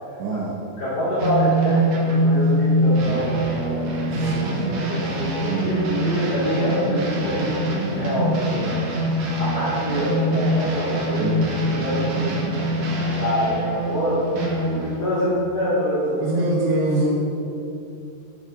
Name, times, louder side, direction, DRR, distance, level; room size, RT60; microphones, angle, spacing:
voice 1, 0.2-0.6 3.1-3.4 4.1-4.6 5.0-5.8 8.4-8.7 11.2-11.5 16.2-17.1, right 2 dB, 85° right, -3 dB, 3.4 m, -26 dB
voice 2, 0.8-3.2 3.6-8.6 9.0-11.3 11.7-12.5 12.9-14.2 14.6-16.3 17.0-17.1, equal, 55° left, -12 dB, 4.7 m, -26 dB
sound 1, 1.2-15.0, right 1 dB, 55° right, 2.0 m, -24 dB
12.5 x 10.5 x 3.7 m, 2.6 s
omnidirectional pair, 4.8 m